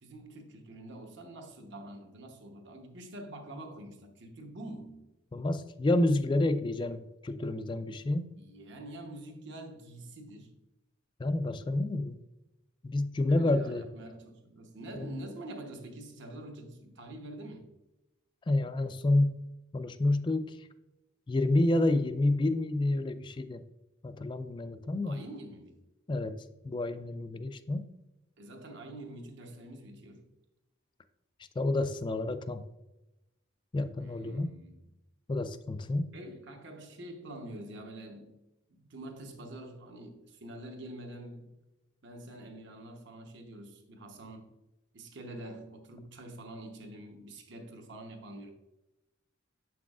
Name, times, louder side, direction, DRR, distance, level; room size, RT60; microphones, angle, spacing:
voice 1, 0.0-5.0 8.4-10.6 13.3-17.7 25.0-25.8 28.4-30.3 34.0-34.7 36.1-38.4 38.7-41.5 42.0-44.5 44.9-48.5, right 1 dB, 60° right, 1.0 m, -46 dB
voice 2, 5.3-8.3 11.2-12.2 12.8-13.9 15.0-15.1 18.5-19.4 19.7-20.6 21.3-23.6 24.0-25.2 26.1-26.4 26.6-27.9 31.6-32.6 33.7-34.5 35.3-36.1, left 2 dB, 25° left, 0.3 m, -29 dB
7.7 x 6.0 x 2.4 m
head